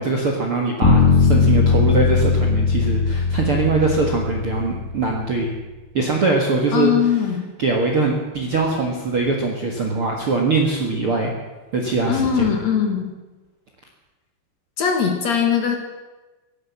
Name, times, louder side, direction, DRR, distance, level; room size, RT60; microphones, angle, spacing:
voice 1, 0.0-5.5 5.9-6.9 7.6-11.3 11.7-12.6, right 3 dB, 80° right, 0 dB, 1.2 m, -22 dB
sound 1, 0.8-4.9, left 4 dB, 20° left, 2.4 m, -18 dB
voice 2, 6.7-7.5 12.1-13.1 14.8-15.8, left 8 dB, 60° left, 3 dB, 1.9 m, -20 dB
17.5 x 11.5 x 7.3 m, 1.2 s
omnidirectional pair, 5.5 m